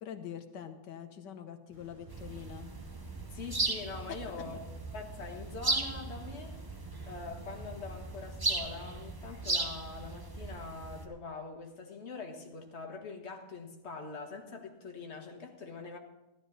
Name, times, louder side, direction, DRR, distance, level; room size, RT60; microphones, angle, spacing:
voice 1, 0.0-2.8 4.1-4.2, left 9 dB, 85° left, 8 dB, 1.6 m, -44 dB
sound 1, 1.7-9.0, right 3 dB, 40° right, 6.6 m, -53 dB
sound 2, 2.1-11.1, right 2 dB, 25° right, 0.4 m, -37 dB
voice 2, 3.3-4.5 4.9-6.6 7.1-16.0, left 4 dB, 40° left, 2 dB, 1.7 m, -43 dB
14.5 x 12.5 x 4.1 m, 1.0 s
omnidirectional pair, 1.8 m